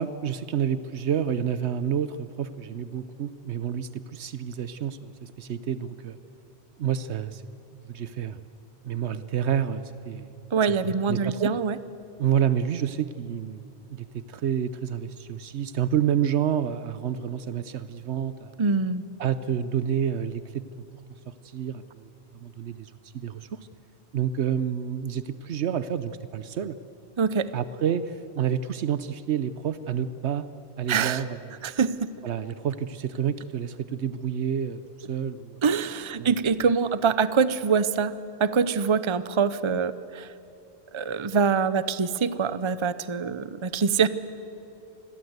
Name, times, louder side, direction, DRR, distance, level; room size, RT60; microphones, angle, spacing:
voice 1, 0.0-6.2 6.8-7.4 7.8-8.4 8.8-10.3 11.1-11.5 12.2-13.6 13.9-18.5 19.2-20.9 21.3-23.6 24.1-26.8 27.5-30.5 30.8-31.4 32.2-34.8 35.1-35.6 36.2-36.3, right 8 dB, 80° right, 13 dB, 1.1 m, -29 dB
voice 2, 10.5-11.8 18.6-19.0 27.2-27.5 30.9-31.2 31.6-32.1 35.6-38.1 38.4-40.3 40.9-44.1, right 5 dB, 30° right, 14 dB, 0.7 m, -24 dB
28.0 x 21.0 x 8.1 m, 3.0 s
omnidirectional pair, 1.1 m